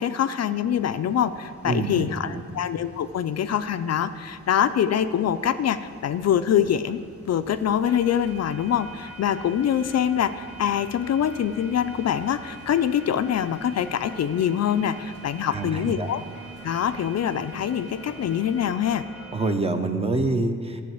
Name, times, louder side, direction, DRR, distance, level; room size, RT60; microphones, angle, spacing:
voice 1, 0.0-7.0 7.3-16.2 16.6-19.0, left 9 dB, 55° left, 11 dB, 0.4 m, -24 dB
sound 1, 0.5-19.5, equal, 5° right, 1.1 m, -47 dB
sound 2, 0.7-18.6, right 3 dB, 50° right, 1.7 m, -48 dB
voice 2, 1.6-2.4 15.5-16.1 19.3-20.8, right 2 dB, 20° right, 7 dB, 0.7 m, -26 dB
11.5 x 7.5 x 7.8 m, 2.1 s
wide cardioid pair, 160°, 31 cm